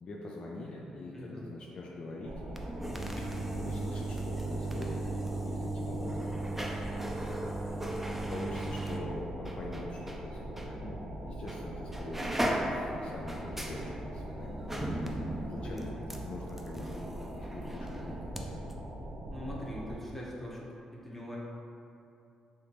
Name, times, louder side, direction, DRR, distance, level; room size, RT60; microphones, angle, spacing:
voice 1, 0.0-2.4 3.2-5.0 5.4-6.3 8.3-15.9 16.2-18.5, left 2 dB, 55° left, -2 dB, 0.4 m, -44 dB
voice 2, 1.1-1.5 6.1-6.3 10.7-10.8 15.6-16.0 19.3-21.4, equal, 10° left, -5 dB, 0.9 m, -42 dB
sound 1, 2.2-20.0, right 1 dB, 70° right, 0.5 m, -42 dB
sound 2, 2.4-10.2 10.6-10.7 11.5-11.7 11.9-18.4 18.7-18.8, right 1 dB, 10° right, 0.4 m, -37 dB
3.4 x 2.8 x 2.9 m, 2.7 s
supercardioid pair, 65°, 2 cm